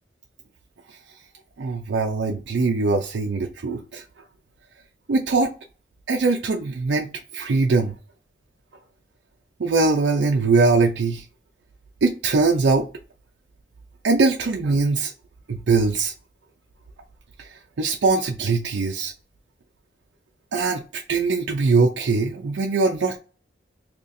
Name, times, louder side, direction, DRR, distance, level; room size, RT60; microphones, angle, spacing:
voice 1, 1.6-4.0 5.1-5.5 6.1-7.1 7.3-7.9 9.6-11.2 12.0-12.9 14.0-15.1 15.5-16.1 17.4-17.5 17.8-19.1 20.5-23.2, right 3 dB, 70° right, 0.4 m, -21 dB
2.9 x 2.6 x 4.0 m
head